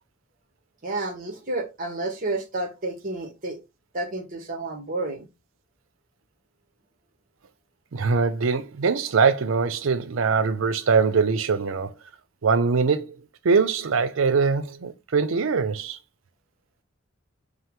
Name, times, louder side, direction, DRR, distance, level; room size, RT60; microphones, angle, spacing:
voice 1, 0.8-3.6 3.9-5.3, right 2 dB, 45° right, 1.0 m, -30 dB
voice 2, 7.9-11.9 12.4-13.1 13.4-16.0, right 5 dB, 85° right, 0.5 m, -22 dB
5.4 x 2.0 x 3.6 m
head